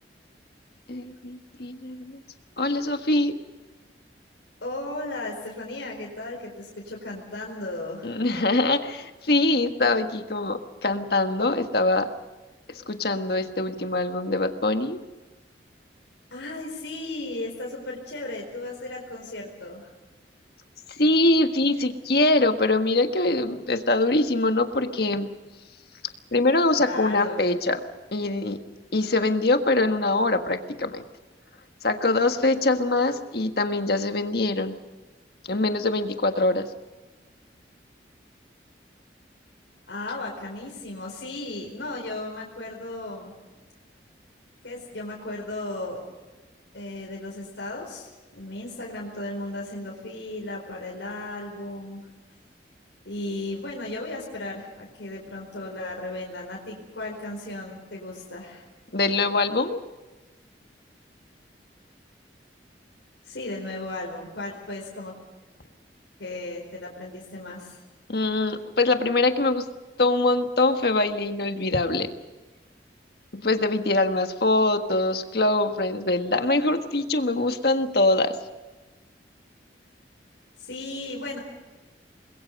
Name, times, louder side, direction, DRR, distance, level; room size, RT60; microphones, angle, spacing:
voice 1, 0.9-2.2 2.6-3.4 8.0-12.1 12.7-15.0 21.0-25.3 26.3-27.8 28.1-28.6 28.9-31.0 31.8-34.8 35.5-36.7 58.9-59.8 68.1-69.6 70.0-72.1 73.3-78.3, left 2 dB, 60° left, 7 dB, 1.6 m, -23 dB
voice 2, 4.6-8.1 16.3-19.9 26.8-27.5 39.9-43.3 44.6-46.0 46.7-52.1 53.0-58.7 63.2-65.1 66.2-67.8 80.6-81.4, left 2 dB, 90° left, -1 dB, 4.5 m, -35 dB
29.0 x 22.0 x 5.4 m, 1.2 s
head